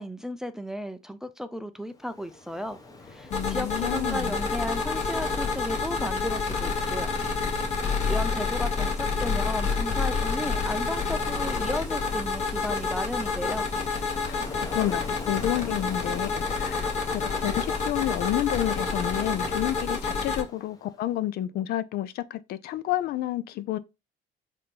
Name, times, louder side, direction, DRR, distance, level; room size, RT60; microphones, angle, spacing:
voice 1, 0.0-2.8 3.1-7.2 7.8-13.7, equal, 5° right, 0.3 m, -34 dB
Ocean, 1.9-21.0, left 2 dB, 20° left, 0.8 m, -45 dB
voice 2, 3.3-4.4 14.3-14.4 14.7-16.8 17.3-23.8, left 13 dB, 65° left, 0.4 m, -30 dB
sound 1, 3.3-20.4, left 4 dB, 45° left, 1.3 m, -28 dB
4.2 x 2.7 x 3.2 m
cardioid pair, 110°, 17 cm